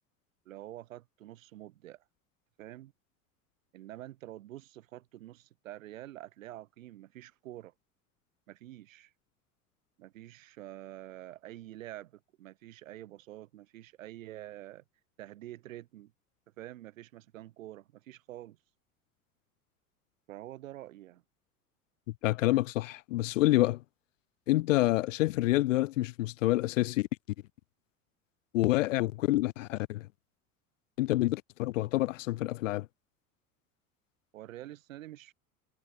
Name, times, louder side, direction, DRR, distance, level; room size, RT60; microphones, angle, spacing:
voice 1, 0.5-2.0 2.6-2.9 3.7-7.7 8.5-9.1 10.0-14.8 15.2-16.1 16.6-18.6 20.3-21.2 34.3-35.3, right 14 dB, 65° right, 4.2 m, -47 dB
voice 2, 22.2-23.8 24.5-27.1 28.5-30.1 31.0-32.9, left 17 dB, 60° left, 0.5 m, -27 dB
figure-of-eight pair, 75°, 44 cm